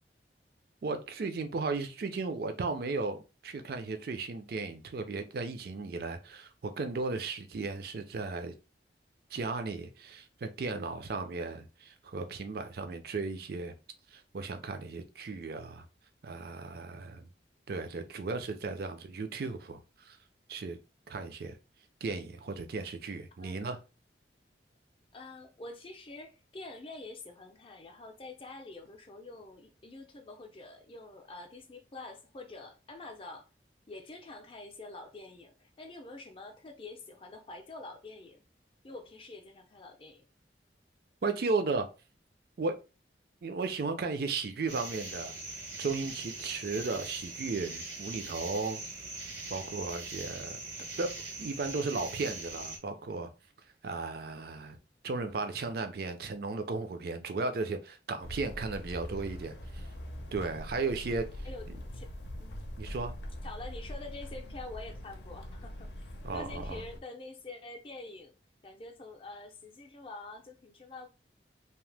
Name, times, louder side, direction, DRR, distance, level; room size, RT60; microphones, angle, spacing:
voice 1, 0.8-8.5 9.3-13.7 14.1-15.8 16.2-17.3 17.7-20.2 20.5-20.8 21.1-21.6 22.0-23.8 41.2-41.9 42.6-42.8 43.4-45.4 45.8-48.8 49.5-50.6 51.0-51.1 51.4-53.3 53.8-54.8 55.0-59.8 60.3-61.3 61.7-61.8 62.8-63.1 66.2-66.8, right 3 dB, 55° right, 0.4 m, -35 dB
voice 2, 23.4-23.8 25.1-33.5 33.9-38.4 38.8-40.2 61.4-61.7 61.9-62.1 62.4-62.6 63.4-66.1 66.3-68.3 68.6-71.1, left 2 dB, 30° left, 0.5 m, -46 dB
sound 1, 44.7-52.8, right 3 dB, 90° right, 1.0 m, -42 dB
sound 2, 58.2-67.0, equal, 75° left, 0.6 m, -42 dB
2.8 x 2.0 x 3.2 m
head